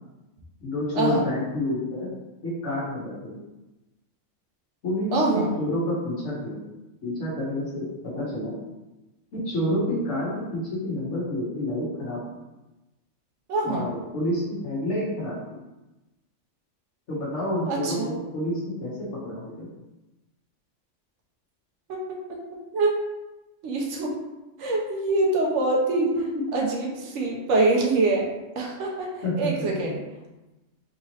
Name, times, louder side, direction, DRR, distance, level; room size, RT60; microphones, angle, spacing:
voice 1, 0.6-2.1 2.4-3.4 4.8-6.6 7.0-8.6 9.3-12.2 13.6-15.6 17.1-18.9 19.2-19.7 26.0-26.2 29.2-29.7, left 1 dB, 75° left, -7 dB, 1.3 m, -29 dB
voice 2, 5.1-5.5 13.5-13.9 17.7-18.2 21.9-22.0 22.3-22.4 22.7-23.0 23.6-24.2 24.6-26.1 26.5-28.3 28.6-30.0, right 2 dB, 80° right, -1 dB, 1.0 m, -24 dB
3.6 x 2.9 x 2.8 m, 1.0 s
omnidirectional pair, 1.2 m